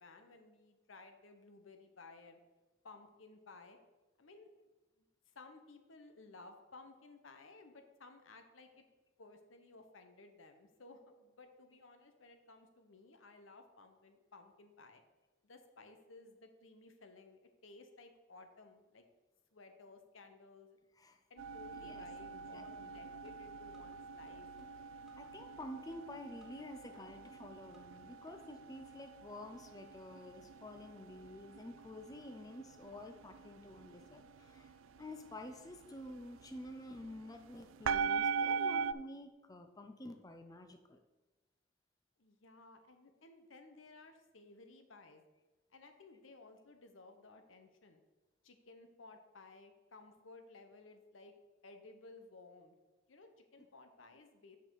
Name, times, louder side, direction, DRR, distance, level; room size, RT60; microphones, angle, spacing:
voice 1, 0.0-2.4 2.8-3.8 4.2-4.7 5.0-8.9 9.2-15.0 15.4-19.0 19.5-20.8 21.3-24.5 42.2-45.2 45.7-48.0 48.4-51.3 51.6-52.7 53.1-54.6, left 3 dB, 85° left, 6 dB, 1.0 m, -57 dB
sound 1, 21.4-38.9, right 6 dB, 85° right, 0.3 m, -42 dB
voice 2, 21.7-23.0 25.2-41.0 53.6-53.7, left 1 dB, 20° left, 6 dB, 0.5 m, -50 dB
sound 2, 23.2-24.0 24.3-25.3 25.6-26.6 26.9-28.0 28.3-28.4, equal, ahead, 0.9 m, -64 dB
7.7 x 5.7 x 4.8 m, 1.2 s
head